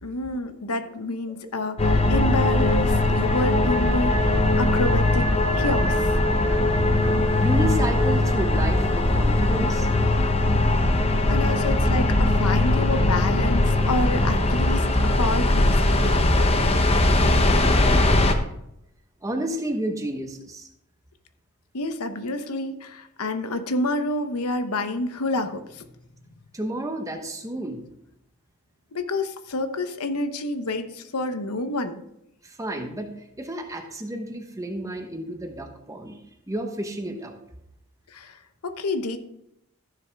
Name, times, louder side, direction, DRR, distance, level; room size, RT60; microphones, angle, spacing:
voice 1, 0.0-5.3 5.5-6.1 11.3-16.2 21.7-25.8 28.9-32.0 38.1-39.2, left 2 dB, 85° left, 8 dB, 0.9 m, -28 dB
sound 1, 1.8-18.3, left 2 dB, 25° left, 0.8 m, -20 dB
voice 2, 7.4-9.9 19.2-20.7 26.5-27.8 32.4-36.2 36.5-37.4, right 1 dB, 15° right, 4 dB, 1.0 m, -31 dB
14.5 x 6.9 x 3.5 m, 0.81 s
head